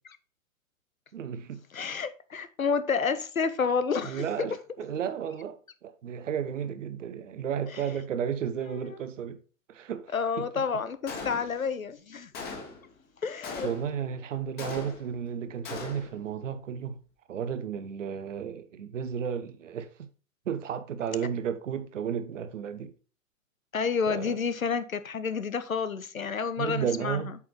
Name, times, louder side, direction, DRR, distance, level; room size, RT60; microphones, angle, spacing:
voice 1, 1.1-1.6 4.0-9.4 9.7-10.4 13.6-17.0 17.3-20.1 20.5-22.9 24.1-24.4 26.6-27.3, right 8 dB, 65° right, 0.8 m, -33 dB
voice 2, 1.7-4.5 7.7-7.8 10.1-12.3 13.2-13.7 23.7-27.3, left 5 dB, 85° left, 0.7 m, -29 dB
Gunshot gunfire, 11.1-11.8 12.3-12.9 13.4-14.0 14.6-15.2 15.6-16.2, left 4 dB, 25° left, 1.7 m, -40 dB
8.1 x 4.9 x 3.1 m
figure-of-eight pair, 110°, 40 cm